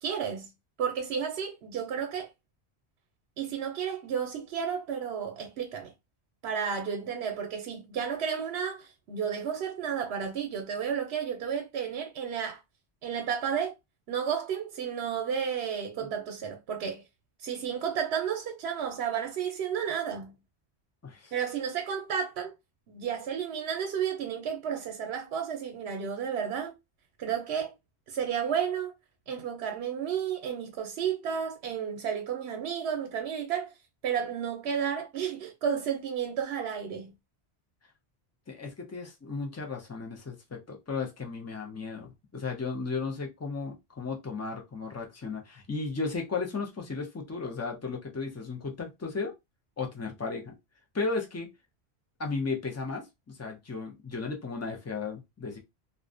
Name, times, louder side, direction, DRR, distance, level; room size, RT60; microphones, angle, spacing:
voice 1, 0.0-0.5 0.8-2.3 3.4-5.9 6.4-12.6 13.0-13.7 14.1-17.0 17.4-20.3 21.3-22.5 22.9-26.7 27.2-27.7 28.1-28.9 29.3-33.7 34.0-37.1, right 7 dB, 75° right, 0.8 m, -32 dB
voice 2, 21.0-21.3 38.5-49.3 49.8-50.5 50.9-51.5 52.2-55.6, left 4 dB, 25° left, 0.3 m, -35 dB
2.5 x 2.1 x 2.4 m
omnidirectional pair, 1.1 m